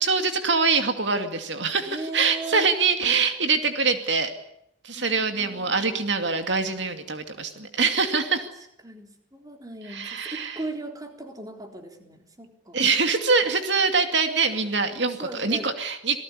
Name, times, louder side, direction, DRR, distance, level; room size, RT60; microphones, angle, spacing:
voice 1, 0.0-4.3 4.8-8.5 9.9-10.6 12.7-16.2, right 4 dB, 65° right, 7 dB, 2.5 m, -24 dB
voice 2, 1.9-2.7 4.9-5.8 8.8-12.8 15.2-15.7, right 2 dB, 20° right, 4 dB, 3.8 m, -37 dB
28.0 x 19.0 x 9.8 m, 0.75 s
head